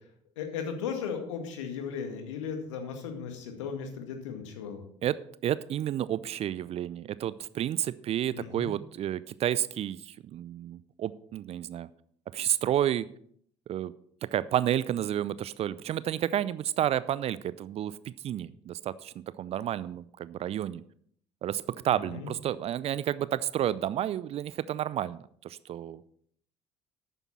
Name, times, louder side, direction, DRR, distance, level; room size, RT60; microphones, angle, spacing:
voice 1, 0.4-4.8 8.3-8.7 21.9-22.3, left 6 dB, 70° left, 5 dB, 2.0 m, -36 dB
voice 2, 5.0-11.9 12.3-13.1 13.7-13.9 14.2-18.0 18.2-20.8 21.4-26.0, right 11 dB, 40° right, 18 dB, 0.5 m, -31 dB
12.0 x 9.0 x 4.2 m, 0.64 s
figure-of-eight pair, 60°, 16 cm